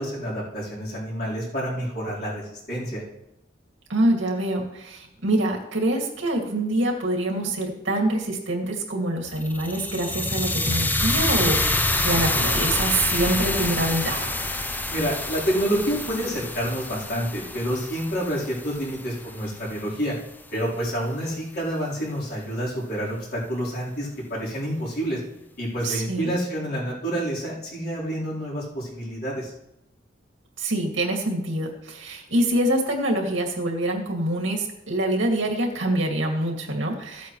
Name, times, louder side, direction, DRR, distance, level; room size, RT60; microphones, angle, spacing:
voice 1, 0.0-3.0 14.9-20.1 20.5-25.2 25.6-29.5, equal, 55° left, -7 dB, 4.0 m, -28 dB
voice 2, 3.9-14.3 25.8-26.4 30.6-37.3, right 1 dB, 90° right, 0 dB, 2.3 m, -25 dB
sound 1, 9.3-19.4, left 2 dB, 10° left, 0.5 m, -27 dB
15.0 x 8.5 x 3.2 m, 0.87 s
head